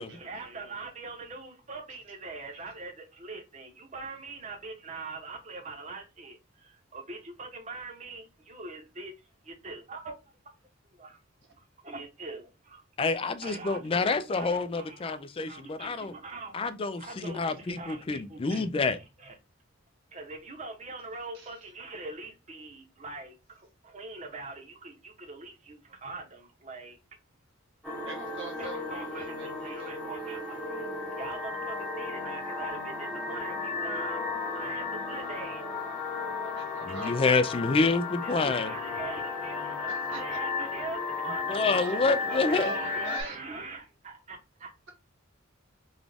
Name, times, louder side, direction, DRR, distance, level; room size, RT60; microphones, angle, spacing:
voice 1, 0.0-9.1 9.4-10.2 11.0-11.2 11.8-12.8 13.4-15.1 15.5-16.6 17.0-19.3 20.1-27.0 28.6-34.3 34.5-35.7 36.9-37.9 38.2-41.6 41.9-44.7, right 3 dB, 35° right, 0.8 m, -42 dB
voice 2, 13.0-16.1 16.5-19.0 36.9-38.7 41.5-42.7, left 3 dB, 25° left, 0.3 m, -28 dB
sound 1, 27.8-43.2, left 4 dB, 5° left, 0.9 m, -34 dB
voice 3, 28.0-30.4 36.4-37.4 39.9-40.2 41.8-43.4, right 3 dB, 60° right, 1.3 m, -43 dB
3.9 x 2.4 x 3.4 m
head